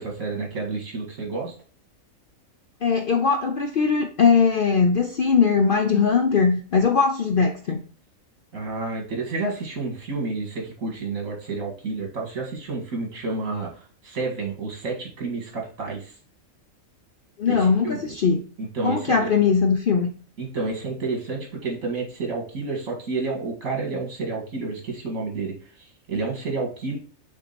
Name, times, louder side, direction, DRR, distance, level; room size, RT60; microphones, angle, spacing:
voice 1, 0.0-1.5 8.5-16.1 17.5-18.1 18.6-19.3 20.4-27.0, right 3 dB, 70° right, 0 dB, 2.5 m, -30 dB
voice 2, 2.8-7.8 17.4-18.4 18.8-20.1, left 5 dB, 55° left, 6 dB, 0.6 m, -20 dB
6.1 x 3.8 x 4.1 m, 0.41 s
omnidirectional pair, 1.5 m